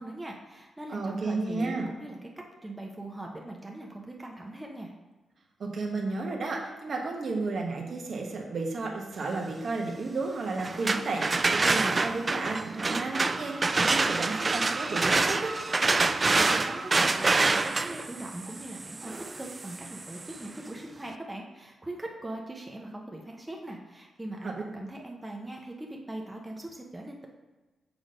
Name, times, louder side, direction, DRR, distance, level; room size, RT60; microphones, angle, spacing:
voice 1, 0.0-4.9 16.0-27.3, right 1 dB, 15° right, 0 dB, 1.0 m, -41 dB
voice 2, 0.9-1.9 5.6-15.5 24.4-24.5, right 3 dB, 60° right, 0 dB, 1.2 m, -32 dB
sound 1, 10.6-20.4, right 3 dB, 30° right, 0.3 m, -27 dB
6.2 x 3.9 x 5.2 m, 1.2 s
cardioid pair, 85°, 0 cm